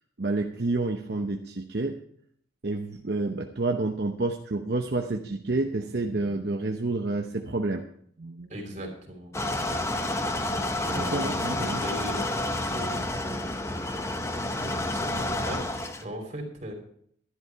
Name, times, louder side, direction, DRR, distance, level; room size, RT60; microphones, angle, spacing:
voice 1, 0.2-2.0 2.6-7.8 8.2-8.5 11.0-11.8, right 2 dB, 55° right, 4 dB, 0.8 m, -29 dB
voice 2, 8.5-16.7, equal, 40° right, 2 dB, 3.1 m, -39 dB
sound 1, 9.3-16.0, left 1 dB, 15° left, 0.8 m, -29 dB
12.5 x 11.0 x 4.6 m, 0.66 s
head